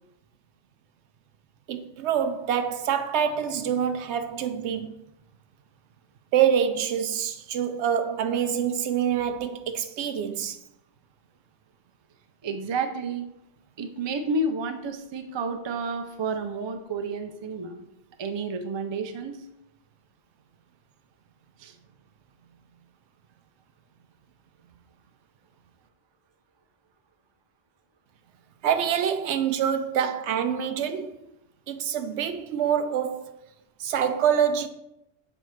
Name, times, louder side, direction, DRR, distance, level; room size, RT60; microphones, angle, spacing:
voice 1, 1.7-5.0 6.3-10.6 28.6-31.1 31.7-33.4 33.8-34.7, right 8 dB, 85° right, 0.9 m, -26 dB
voice 2, 12.4-13.3 13.8-17.8 18.2-19.4 21.6-21.8, right 3 dB, 40° right, 0.4 m, -30 dB
7.0 x 4.3 x 3.1 m
omnidirectional pair, 1.1 m